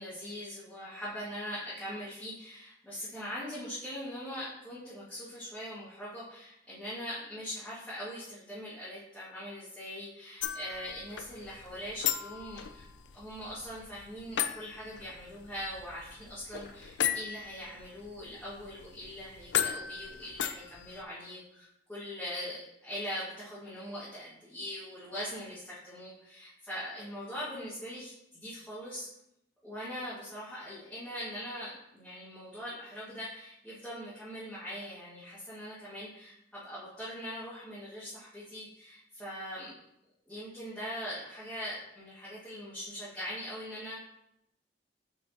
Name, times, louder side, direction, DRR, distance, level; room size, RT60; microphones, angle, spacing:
voice 1, 0.0-12.9 13.1-29.1 29.6-39.7 40.3-44.0, equal, 5° left, -12 dB, 1.8 m, -41 dB
sound 1, 10.4-21.0, left 10 dB, 90° left, 0.4 m, -37 dB
7.3 x 4.9 x 2.8 m, 0.79 s
head